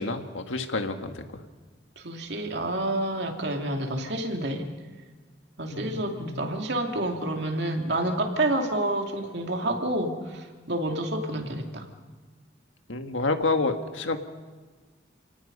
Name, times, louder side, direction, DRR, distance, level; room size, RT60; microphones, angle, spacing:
voice 1, 0.0-1.4 5.7-6.5 12.9-14.2, left 3 dB, 85° left, 6 dB, 1.7 m, -29 dB
voice 2, 2.0-4.7 5.6-11.8, right 1 dB, 60° right, 3 dB, 2.7 m, -29 dB
29.0 x 18.5 x 5.5 m, 1.4 s
head